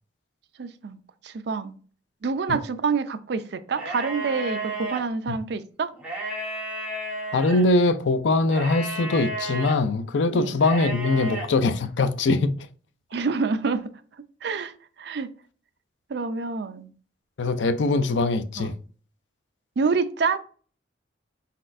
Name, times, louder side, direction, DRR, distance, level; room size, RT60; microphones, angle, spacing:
voice 1, 0.6-1.8 2.2-5.9 10.3-10.6 13.1-13.9 14.4-15.3 16.1-16.9 18.6-18.7 19.8-20.4, right 4 dB, 65° right, 0.4 m, -27 dB
sound 1, 3.7-5.0 5.9-7.6 8.5-9.7 10.6-11.5, right 1 dB, 5° right, 1.2 m, -32 dB
voice 2, 7.3-12.5 17.4-18.7, left 2 dB, 80° left, 0.5 m, -22 dB
4.2 x 4.1 x 2.5 m
head